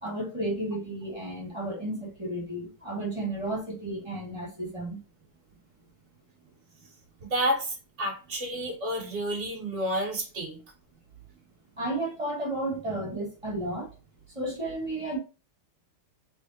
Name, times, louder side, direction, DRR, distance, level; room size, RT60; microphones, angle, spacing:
voice 1, 0.0-5.0 11.8-13.9 14.3-15.2, right 1 dB, 15° right, 1.4 m, -33 dB
voice 2, 7.2-10.6, equal, 40° right, 1.3 m, -30 dB
3.5 x 3.5 x 2.8 m
omnidirectional pair, 2.4 m